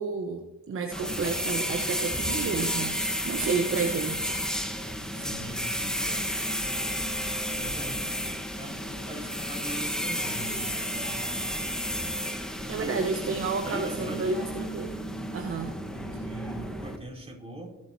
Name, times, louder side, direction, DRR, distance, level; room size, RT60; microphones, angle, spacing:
voice 1, 0.0-4.3 5.0-5.2 12.7-14.9 15.3-15.7, right 4 dB, 45° right, 3 dB, 1.1 m, -31 dB
sound 1, 0.9-17.0, equal, ahead, 1.4 m, -32 dB
voice 2, 5.1-6.8 7.5-8.1 8.6-11.4 12.8-13.4 13.6-14.4 15.9-17.8, right 1 dB, 20° right, -3 dB, 4.1 m, -41 dB
19.5 x 8.1 x 2.8 m, 1.1 s
cardioid pair, 90°, 30 cm